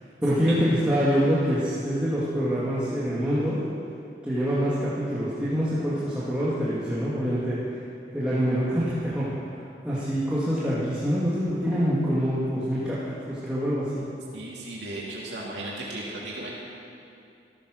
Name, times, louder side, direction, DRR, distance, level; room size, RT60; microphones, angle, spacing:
voice 1, 0.2-3.6 4.2-7.8 8.1-14.0, equal, 5° right, -11 dB, 2.3 m, -25 dB
voice 2, 14.3-16.5, right 1 dB, 85° right, -5 dB, 2.7 m, -35 dB
14.5 x 14.0 x 6.5 m, 2.6 s
head